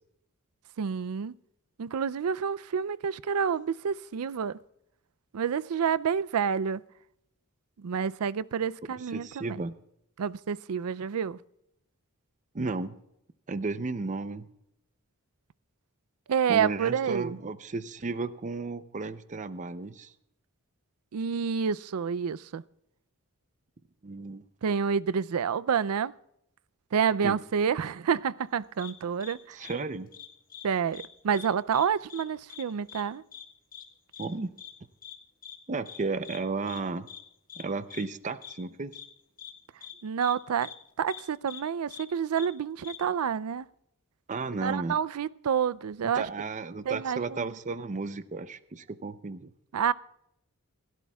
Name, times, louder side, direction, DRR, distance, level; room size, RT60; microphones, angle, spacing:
voice 1, 0.8-1.3 1.8-4.6 5.3-6.8 7.8-9.6 10.2-11.4 16.3-17.4 21.1-22.6 24.6-26.1 26.9-29.6 30.6-33.2 40.0-40.7 41.0-43.7 44.6-46.2 46.9-47.5 49.7-49.9, right 7 dB, 80° right, 0.4 m, -28 dB
voice 2, 9.1-9.7 12.5-13.0 13.5-14.5 16.5-20.1 24.0-24.4 27.2-27.4 29.5-30.1 34.2-34.5 35.7-37.1 37.6-38.9 44.3-45.0 46.1-49.5, right 3 dB, 35° right, 0.6 m, -33 dB
sound 1, 28.8-28.9 29.2-29.3 29.6-29.7 30.1-30.7 30.9-31.1 31.3-31.8 32.1-32.2 32.5-32.6 32.9-33.0 33.3-33.4 33.7-33.8 34.1-34.3 34.6-34.7 35.0-35.2 35.4-35.6 35.9-36.0 36.2-36.4 36.7-36.8 37.1-37.2 37.5-37.6 37.9-38.0 38.4-38.5 38.9-39.1 39.4-39.5 39.8-39.9 40.2-40.3 40.6-40.7 41.1-41.2 41.5-41.6 41.9-42.0 42.4-42.5 42.8-43.0, left 10 dB, 40° left, 1.5 m, -44 dB
27.5 x 12.5 x 2.3 m
head